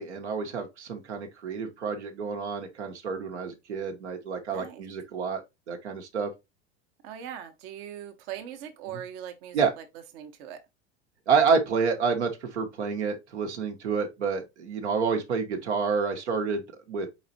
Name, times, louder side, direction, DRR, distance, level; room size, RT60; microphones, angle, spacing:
voice 1, 0.0-5.4 5.7-6.3 9.5-9.7 11.3-17.1, right 5 dB, 85° right, 1.0 m, -28 dB
voice 2, 4.5-4.8 7.0-9.8 10.1-10.6, right 9 dB, 60° right, 0.9 m, -40 dB
4.2 x 4.0 x 2.7 m
hypercardioid pair, 90°, 34 cm